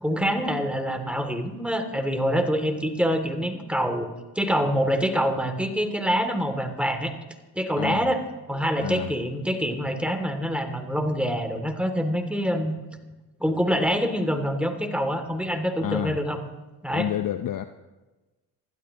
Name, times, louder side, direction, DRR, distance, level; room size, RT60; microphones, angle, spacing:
voice 1, 0.0-4.1 4.4-7.1 7.5-8.2 8.5-12.8 13.4-16.4 16.8-17.1, equal, ahead, 5 dB, 2.5 m, -25 dB
voice 2, 7.8-8.1 8.8-9.1 15.8-16.2 16.9-17.6, left 11 dB, 40° left, 10 dB, 0.7 m, -29 dB
27.5 x 12.5 x 3.0 m, 1.1 s
hypercardioid pair, 50°, 49 cm